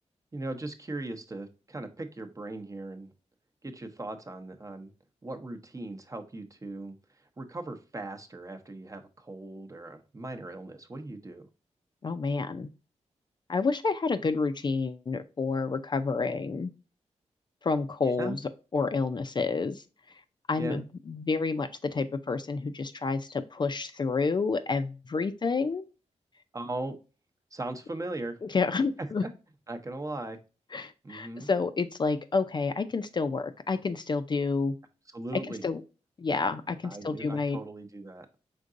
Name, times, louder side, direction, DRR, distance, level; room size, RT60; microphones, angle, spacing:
voice 1, 0.3-3.1 3.6-4.9 5.2-11.5 18.2-18.4 20.6-20.8 26.5-27.0 27.5-28.4 29.2-29.3 29.7-30.4 31.0-31.5 35.1-35.7 36.8-38.3, right 2 dB, 25° right, 6 dB, 0.7 m, -38 dB
voice 2, 12.0-12.7 13.5-16.7 17.6-18.4 18.7-19.8 20.5-25.9 28.5-29.3 30.7-34.7 35.6-35.8 36.2-37.6, left 4 dB, 40° left, 9 dB, 0.4 m, -29 dB
5.2 x 3.7 x 2.5 m, 0.32 s
wide cardioid pair, 110°, 12 cm